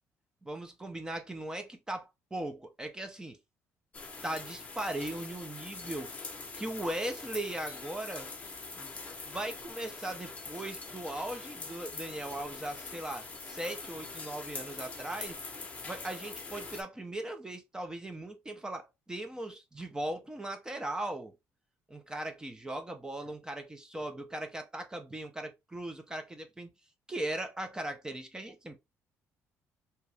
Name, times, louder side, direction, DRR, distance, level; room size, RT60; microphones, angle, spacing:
voice 1, 0.4-3.4 4.2-6.1 6.6-8.3 8.7-8.9 9.3-15.4 15.8-21.3 21.9-26.7 27.1-28.8, right 1 dB, 15° right, 0.5 m, -38 dB
sound 1, 3.9-16.8, left 4 dB, 25° left, 0.8 m, -43 dB
2.8 x 2.5 x 3.2 m
cardioid pair, 120°, 6 cm